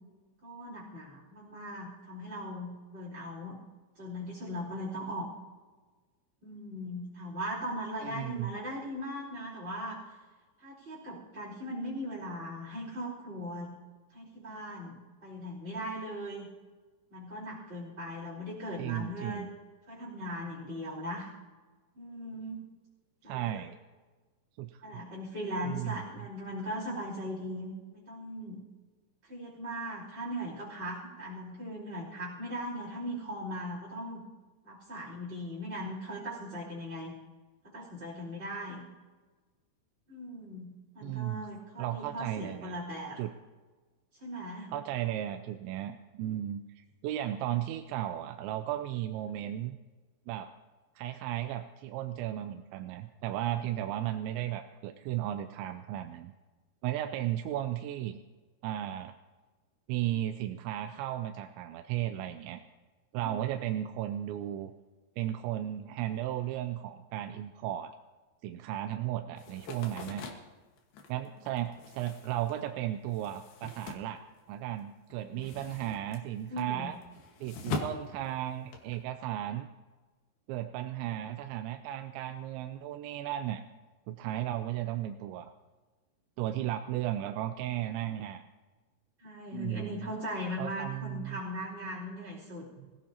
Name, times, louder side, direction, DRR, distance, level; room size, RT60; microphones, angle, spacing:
voice 1, 0.4-3.6 4.0-5.3 6.4-10.0 10.6-13.7 14.1-15.0 15.2-16.5 17.1-19.5 19.9-21.3 21.9-22.6 23.2-23.6 24.8-28.6 29.2-34.2 34.6-37.1 37.6-38.8 40.1-43.2 44.2-44.7 49.3-49.4 63.2-63.4 75.2-75.5 76.5-76.9 89.2-92.7, equal, 15° right, -8 dB, 3.8 m, -39 dB
voice 2, 8.0-8.5 18.8-19.5 23.3-23.7 24.6-25.0 25.7-26.1 41.0-41.5 41.8-42.8 43.2-43.3 44.7-49.8 50.3-50.5 51.0-56.3 56.8-58.2 58.6-59.1 59.9-62.6 63.1-64.7 65.2-68.0 68.4-70.3 71.1-77.0 77.4-79.7 80.5-83.6 84.1-85.5 86.4-88.4 89.5-90.1 90.6-91.4, right 12 dB, 85° right, 7 dB, 2.8 m, -35 dB
sound 1, 69.4-74.8 75.1-79.0, left 4 dB, 65° left, 3.0 m, -42 dB
25.5 x 16.5 x 2.8 m, 1.3 s
omnidirectional pair, 5.3 m